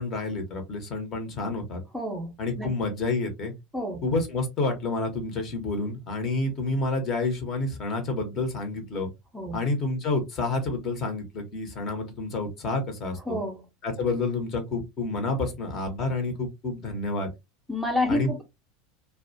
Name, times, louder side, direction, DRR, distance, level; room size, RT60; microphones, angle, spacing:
voice 1, 0.0-1.8 2.4-3.5 4.0-9.1 9.5-13.2 13.8-17.3 18.1-18.4, left 3 dB, 35° left, 0.9 m, -29 dB
voice 2, 1.9-2.7 3.7-4.0 9.3-9.6 13.3-13.6 17.7-18.4, left 1 dB, 5° right, 0.8 m, -29 dB
2.4 x 2.1 x 2.6 m
figure-of-eight pair, 80°, 0 cm